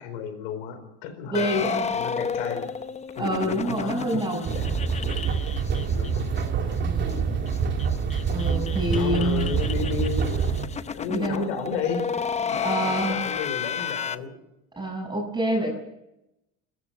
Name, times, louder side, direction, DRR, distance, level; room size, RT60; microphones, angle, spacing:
voice 1, 0.0-1.5 1.9-2.7 3.2-4.6 5.0-5.1 5.9-7.6 8.9-14.4, left 5 dB, 90° left, 9 dB, 4.6 m, -34 dB
sound 1, 1.3-6.4 6.7-6.8 7.1-7.2 7.5-14.2, left 6 dB, 20° left, 0.8 m, -32 dB
voice 2, 1.3-1.8 3.2-4.6 6.8-7.4 8.3-9.6 11.1-11.5 12.6-13.2 14.7-15.8, right 1 dB, 15° right, 1 dB, 6.8 m, -27 dB
sound 2, 4.5-10.7, right 6 dB, 35° right, 3.0 m, -26 dB
27.5 x 14.0 x 7.2 m, 0.88 s
cardioid pair, 130°, 31 cm